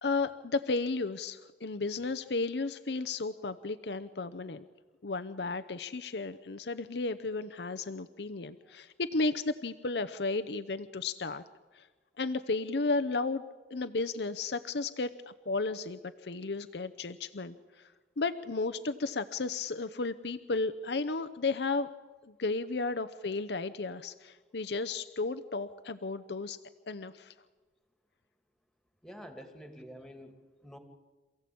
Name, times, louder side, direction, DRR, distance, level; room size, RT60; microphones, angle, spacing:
voice 1, 0.0-4.6 5.0-11.4 11.7-11.9 12.2-17.9 18.2-21.9 22.2-26.6 26.9-27.3, left 3 dB, 70° left, 11 dB, 0.8 m, -33 dB
voice 2, 29.0-30.8, equal, ahead, 6 dB, 2.4 m, -48 dB
27.5 x 16.0 x 8.6 m, 1.3 s
head